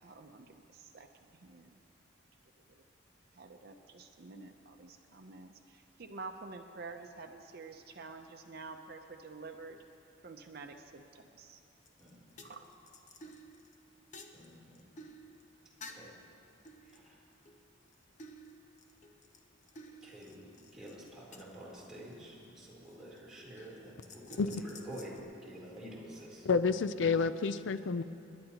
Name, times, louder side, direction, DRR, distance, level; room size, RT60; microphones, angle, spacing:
voice 1, 0.0-1.8 2.7-2.9 3.3-9.8 10.2-11.6 12.4-12.7 13.2-13.3, right 3 dB, 55° right, 5 dB, 0.6 m, -49 dB
sound 1, 11.9-12.1 12.4-16.2 16.6-17.9 18.2-22.2 22.9-23.2 23.6-25.2, left 1 dB, 40° left, 0.9 m, -53 dB
voice 2, 14.3-14.8 15.9-16.1 16.9-17.1 20.0-26.5, equal, 5° right, -8 dB, 3.5 m, -49 dB
voice 3, 26.4-28.0, left 4 dB, 70° left, 12 dB, 0.4 m, -29 dB
29.0 x 11.0 x 2.9 m, 2.6 s
head